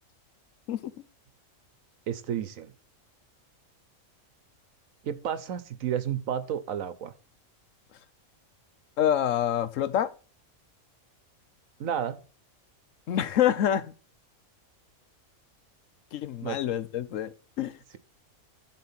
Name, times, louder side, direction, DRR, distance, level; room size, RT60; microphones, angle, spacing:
voice 1, 2.1-2.7 5.0-7.1 11.8-12.2 16.4-16.6, right 9 dB, 75° right, 1.2 m, -31 dB
voice 2, 9.0-10.1 13.1-13.9 16.1-17.8, left 10 dB, 70° left, 1.0 m, -27 dB
12.0 x 4.3 x 5.8 m
omnidirectional pair, 1.5 m